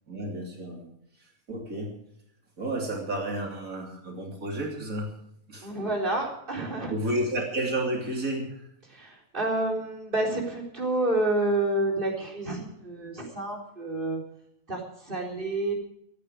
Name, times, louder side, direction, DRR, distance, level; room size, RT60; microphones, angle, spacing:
voice 1, 0.1-0.9 1.5-1.9 2.6-5.1 5.5-5.7 6.9-8.5, right 1 dB, 80° right, 0 dB, 3.6 m, -31 dB
voice 2, 5.6-6.9 8.8-14.2 14.7-15.7, right 2 dB, 40° right, -1 dB, 4.1 m, -29 dB
25.5 x 9.5 x 4.8 m, 0.74 s
omnidirectional pair, 1.4 m